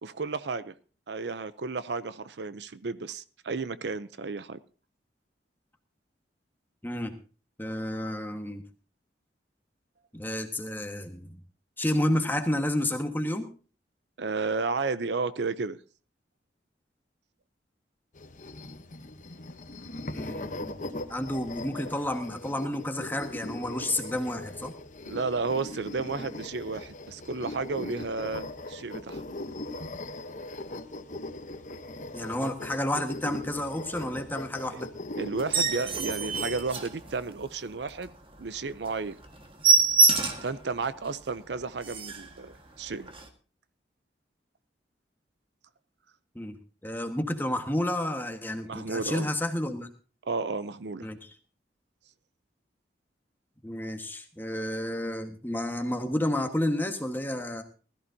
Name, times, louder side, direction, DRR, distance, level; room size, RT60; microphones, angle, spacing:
voice 1, 0.0-0.7 1.1-4.6 14.2-15.8 25.0-29.2 34.7-34.8 35.2-38.1 38.4-39.2 40.4-43.1 48.7-49.3 50.3-51.1, right 4 dB, 70° right, 15 dB, 0.6 m, -32 dB
voice 2, 6.8-7.1 7.6-8.6 10.1-11.4 11.8-13.5 20.0-24.7 32.1-34.9 46.3-46.6 46.8-49.9 51.0-51.3 53.6-57.6, left 1 dB, 10° left, 5 dB, 1.5 m, -31 dB
sound 1, 18.1-36.8, left 2 dB, 45° left, 1.0 m, -40 dB
sound 2, 35.4-37.5 37.9-38.1 38.5-38.6 38.9-39.0 39.2-40.6 41.1-41.2 41.5-41.6 41.8-42.3 43.1-43.2, right 4 dB, 30° right, 1.6 m, -25 dB
20.0 x 14.0 x 2.8 m, 0.37 s
head